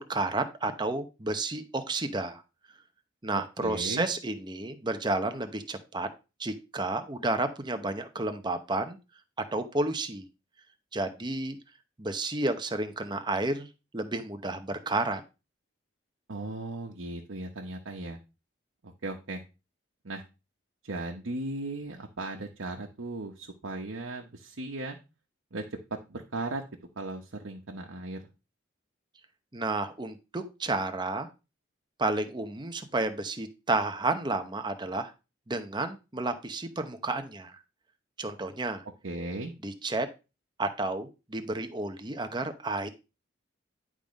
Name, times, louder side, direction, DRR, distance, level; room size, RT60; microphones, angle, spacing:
voice 1, 0.0-2.4 3.2-6.1 6.4-9.0 9.5-10.3 10.9-11.6 12.0-13.7 13.9-15.2 29.5-31.3 32.0-35.1 35.5-37.5 38.2-38.8 39.6-40.1 40.6-42.9, right 2 dB, 20° right, 8 dB, 0.8 m, -31 dB
voice 2, 3.6-4.1 16.3-18.2 18.8-19.4 20.0-20.2 20.8-25.0 25.5-26.6 27.0-28.2 39.0-39.5, right 2 dB, 85° right, 1 dB, 1.0 m, -37 dB
10.5 x 3.6 x 5.2 m, 0.29 s
head